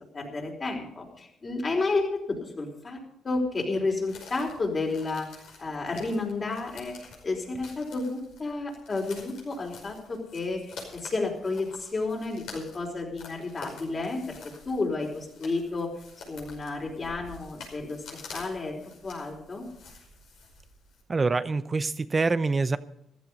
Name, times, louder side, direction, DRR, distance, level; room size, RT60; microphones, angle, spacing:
voice 1, 0.1-3.0 3.2-10.6 10.9-14.4 14.7-15.9 16.3-18.7 19.0-19.7, left 3 dB, 35° left, 1 dB, 4.4 m, -31 dB
sound 1, 4.1-21.0, left 4 dB, 80° left, 5.4 m, -48 dB
voice 2, 21.1-22.8, right 3 dB, 30° right, 14 dB, 0.7 m, -25 dB
15.0 x 12.5 x 5.4 m, 0.77 s
cardioid pair, 90°, 0 cm